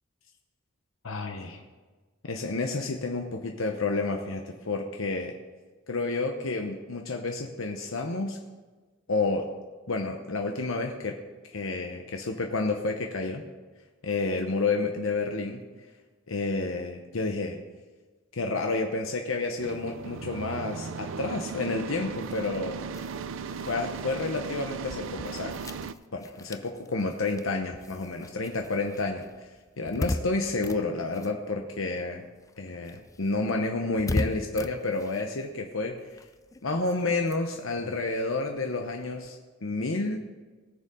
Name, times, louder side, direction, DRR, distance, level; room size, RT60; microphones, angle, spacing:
voice 1, 1.0-1.6 2.2-5.3 5.9-8.4 9.1-9.5 9.9-11.2 11.5-13.4 14.0-15.6 16.3-17.6 18.3-22.8 23.7-25.6 26.1-29.2 29.8-32.2 32.6-36.0 36.6-40.2, left 3 dB, 85° left, 3 dB, 0.9 m, -30 dB
sound 1, 19.6-25.9, right 5 dB, 65° right, 0.4 m, -37 dB
sound 2, 22.2-32.1 32.3-39.3, left 2 dB, 15° left, 0.3 m, -40 dB
19.0 x 6.7 x 3.7 m, 1.3 s
head